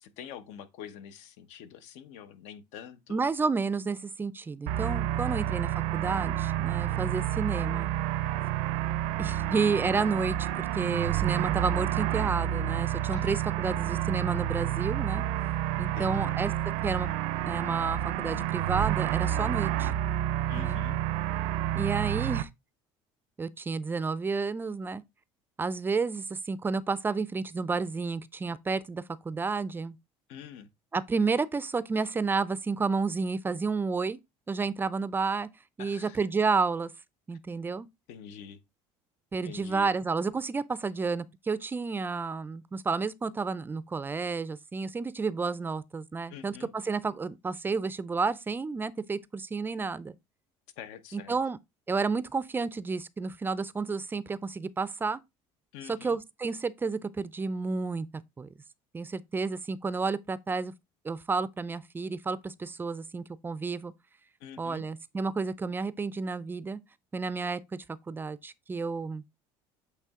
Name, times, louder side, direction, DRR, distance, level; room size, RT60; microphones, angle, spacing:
voice 1, 0.0-3.3 5.1-5.5 13.1-13.4 15.9-16.4 20.5-21.0 30.3-30.7 35.8-36.2 38.1-38.6 39.4-39.9 46.3-46.7 50.8-51.4 55.7-56.2 64.4-64.8, left 8 dB, 75° left, 0.9 m, -45 dB
voice 2, 3.1-7.9 9.2-15.2 15.8-16.5 16.8-17.1 17.5-19.9 20.6-20.8 21.7-22.5 23.4-25.0 25.6-30.0 30.9-34.2 34.5-35.5 35.8-36.9 37.3-37.9 39.3-50.1 51.1-51.6 51.9-55.2 55.9-58.5 58.9-60.7 61.0-63.9 64.6-66.8 67.1-67.6 68.1-69.2, right 4 dB, 15° right, 0.4 m, -31 dB
sound 1, 4.7-22.4, right 13 dB, 80° right, 0.5 m, -29 dB
8.3 x 3.2 x 3.6 m
cardioid pair, 120°, 12 cm